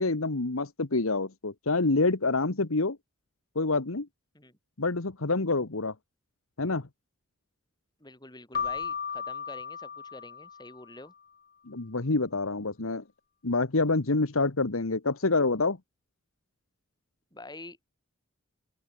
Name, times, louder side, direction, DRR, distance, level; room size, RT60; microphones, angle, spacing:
voice 1, 0.0-3.0 3.5-4.1 4.8-5.9 6.6-6.9 11.7-13.0 13.4-15.8, left 3 dB, 80° left, 1.4 m, -27 dB
voice 2, 8.0-11.1 17.3-17.8, left 2 dB, 20° left, 7.1 m, -47 dB
Keyboard (musical), 8.5-11.1, left 6 dB, 45° left, 2.6 m, -35 dB
open air
head